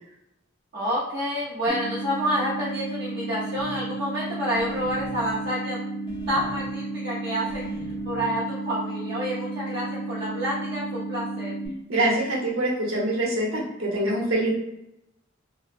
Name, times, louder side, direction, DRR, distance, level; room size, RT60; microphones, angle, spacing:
voice 1, 0.7-5.8 6.3-7.7 8.0-11.5, equal, 55° right, -8 dB, 0.6 m, -28 dB
sound 1, 1.7-11.7, right 3 dB, 20° right, 0.7 m, -33 dB
sound 2, 3.5-3.8 4.5-5.5 6.1-6.7 7.5-8.3, equal, 25° left, 0.5 m, -42 dB
voice 2, 11.9-14.5, right 1 dB, 80° right, -4 dB, 0.9 m, -24 dB
2.8 x 2.0 x 2.5 m, 0.87 s
head